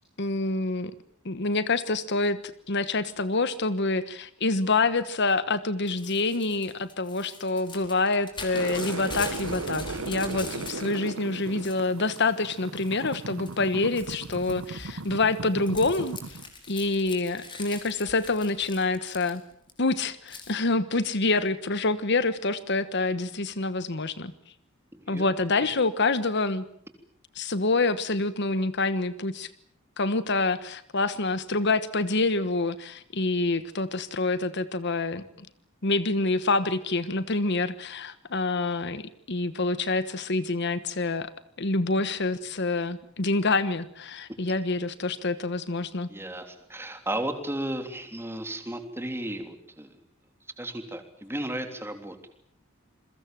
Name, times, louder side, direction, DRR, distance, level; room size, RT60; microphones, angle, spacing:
voice 1, 0.2-0.9 1.2-2.4 2.7-16.4 16.7-19.4 19.8-24.3 25.1-26.6 27.3-29.5 30.0-35.5 35.8-41.3 41.6-46.1, left 3 dB, 55° left, 14 dB, 1.2 m, -27 dB
Crumpling crinkling / Tearing, 5.9-11.1 11.4-12.2 12.8-13.2 13.5-19.7 20.3-20.5, left 3 dB, 25° left, 4.8 m, -42 dB
sound 1, 8.5-16.5, right 3 dB, 80° right, 1.0 m, -37 dB
voice 2, 24.9-25.3 46.1-49.9 50.6-52.2, right 1 dB, 10° right, 7 dB, 3.3 m, -34 dB
28.5 x 22.5 x 7.6 m, 0.65 s
head